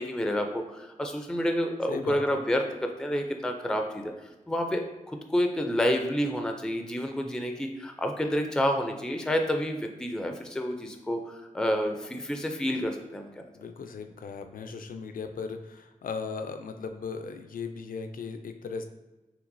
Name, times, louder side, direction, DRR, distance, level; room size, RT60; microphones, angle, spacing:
voice 1, 0.0-4.1 4.5-13.5, equal, 5° left, 4 dB, 0.4 m, -29 dB
voice 2, 1.9-2.4 13.6-18.8, left 5 dB, 80° left, 7 dB, 0.4 m, -37 dB
6.0 x 3.2 x 2.6 m, 1.1 s
wide cardioid pair, 140°, 14 cm